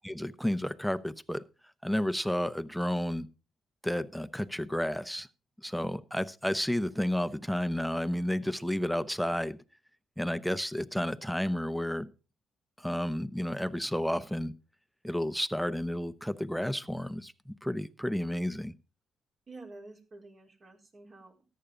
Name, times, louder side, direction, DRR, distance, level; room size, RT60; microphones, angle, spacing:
voice 1, 0.0-1.4 1.8-3.3 3.8-5.3 5.6-9.6 10.2-12.1 12.8-14.5 15.0-18.7, equal, ahead, 13 dB, 0.9 m, -31 dB
voice 2, 19.5-21.4, right 2 dB, 45° right, 2 dB, 4.2 m, -49 dB
14.0 x 10.5 x 3.8 m, 0.33 s
cardioid pair, 90°, 0 cm